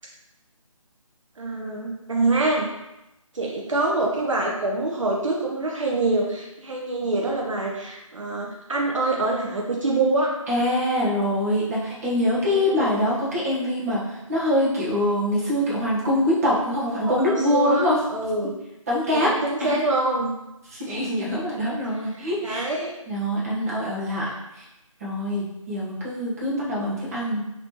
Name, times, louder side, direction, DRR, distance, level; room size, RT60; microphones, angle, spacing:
voice 1, 1.4-2.7 3.3-10.3 12.4-12.9 16.9-17.8 18.1-18.5 19.1-20.3 21.0-21.1 22.4-22.9, right 2 dB, 65° right, -1 dB, 0.7 m, -25 dB
voice 2, 10.5-18.0 18.9-19.8 20.7-22.7 23.1-24.3 24.6-24.7 25.0-27.4, left 1 dB, 25° right, -6 dB, 0.9 m, -24 dB
3.1 x 2.9 x 3.0 m, 0.92 s
figure-of-eight pair, 155°, 18 cm